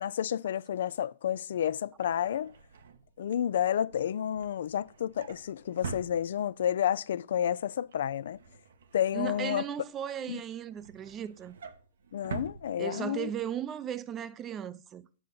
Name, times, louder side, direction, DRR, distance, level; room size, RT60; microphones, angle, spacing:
voice 1, 0.0-2.5 3.2-8.4 8.9-9.6 10.3-10.4 12.1-13.3, left 10 dB, 70° left, 0.3 m, -30 dB
Drawer open or close, 1.7-6.8 7.2-7.5 7.7-10.0 10.4-13.4 13.7-13.9 14.2-14.3, right 5 dB, 75° right, 0.9 m, -46 dB
voice 2, 9.1-11.6 12.8-15.0, right 9 dB, 25° right, 0.5 m, -36 dB
7.6 x 6.3 x 3.8 m
hypercardioid pair, 130°, 0 cm